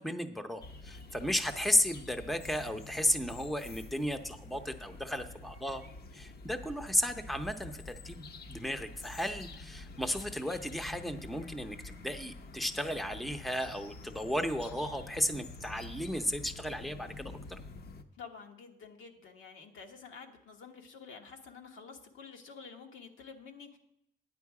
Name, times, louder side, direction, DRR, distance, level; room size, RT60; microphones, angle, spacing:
voice 1, 0.0-5.8 6.1-17.6, left 1 dB, ahead, 8 dB, 0.6 m, -34 dB
sound 1, 0.6-18.0, left 3 dB, 50° left, 0.7 m, -48 dB
voice 2, 18.1-23.8, left 5 dB, 80° left, 3 dB, 1.2 m, -49 dB
9.6 x 7.8 x 4.8 m, 0.79 s
cardioid pair, 90°, 20 cm